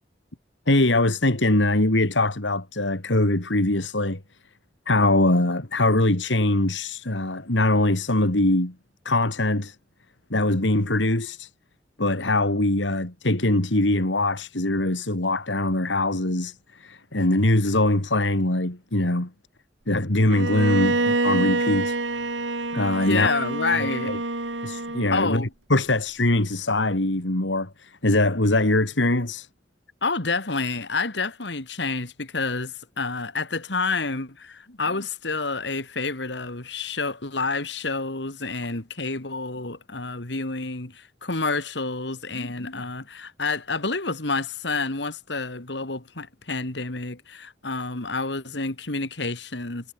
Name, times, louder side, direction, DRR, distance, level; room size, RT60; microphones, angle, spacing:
voice 1, 0.7-4.2 4.9-8.7 9.0-9.8 10.3-11.5 12.0-19.3 19.9-22.0 22.7-23.3 24.1-24.2 24.6-29.5, left 2 dB, 85° left, 2.7 m, -22 dB
Bowed string instrument, 20.3-25.3, right 2 dB, 90° right, 2.5 m, -26 dB
voice 2, 23.0-24.1 25.1-25.5 30.0-49.9, left 3 dB, 70° left, 2.7 m, -29 dB
head